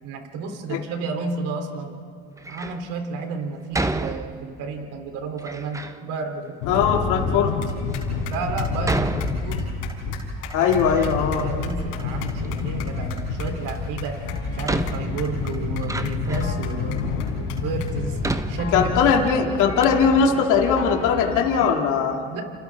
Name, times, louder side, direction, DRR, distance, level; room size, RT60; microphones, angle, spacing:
voice 1, 0.0-1.9 2.5-6.9 8.3-9.8 11.3-14.2 14.5-17.0 17.4-18.2 18.5-19.1 22.3-22.4, right 4 dB, 65° right, 4 dB, 3.3 m, -32 dB
Door, 2.4-2.8 3.7-4.7 5.4-6.0 6.8-6.9 7.6-7.7 8.8-10.0 10.3-11.4 11.7-12.5 13.9-14.0 14.6-16.6 17.3-17.4 18.2-19.3 19.5-19.6 19.8-20.0, right 2 dB, 10° right, 0.9 m, -31 dB
sound 1, 6.6-19.3, left 4 dB, 90° left, 4.5 m, -29 dB
voice 2, 6.7-7.5 10.5-11.5 18.7-22.2, left 6 dB, 65° left, 0 dB, 2.6 m, -20 dB
sound 2, 14.2-21.7, left 5 dB, 40° left, 2.0 m, -34 dB
29.5 x 29.5 x 3.6 m, 2.5 s
supercardioid pair, 95°, 33 cm